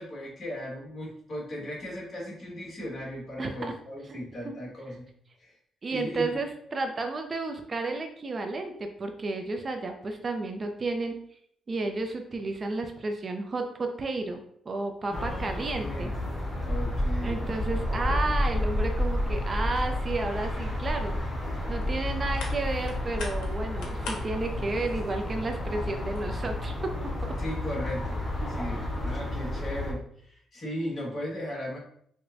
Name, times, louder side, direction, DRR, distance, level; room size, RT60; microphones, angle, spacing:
voice 1, 0.0-5.1 5.4-5.6 5.9-6.4 15.1-16.1 16.6-17.4 27.4-31.8, equal, 40° left, -3 dB, 1.5 m, -37 dB
voice 2, 3.4-3.7 4.1-4.2 4.4-4.5 4.9-5.0 5.8-11.2 11.7-16.1 17.2-21.2 21.7-26.9 27.2-27.3 28.4-28.9, right 3 dB, 35° right, 5 dB, 0.4 m, -32 dB
sound 1, 15.1-29.9, left 1 dB, 15° left, 1.2 m, -31 dB
opening laptop and putting it on, 21.4-26.6, left 3 dB, 80° left, 0.7 m, -44 dB
4.8 x 2.1 x 2.5 m, 0.67 s
cardioid pair, 90°, 0 cm